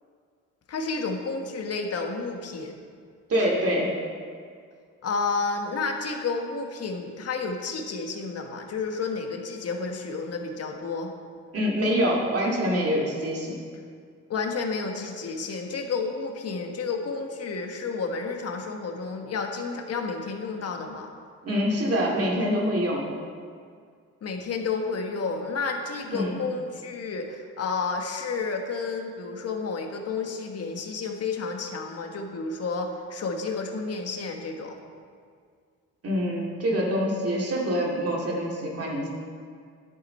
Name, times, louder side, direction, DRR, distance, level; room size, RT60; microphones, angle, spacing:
voice 1, 0.7-2.8 5.0-11.1 14.3-21.1 24.2-34.8, left 4 dB, 55° left, 3 dB, 1.4 m, -31 dB
voice 2, 3.3-3.9 11.5-13.6 21.4-23.1 26.1-26.4 36.0-39.1, equal, 50° right, -2 dB, 2.4 m, -25 dB
11.0 x 8.3 x 4.4 m, 2.1 s
cardioid pair, 90°, 30 cm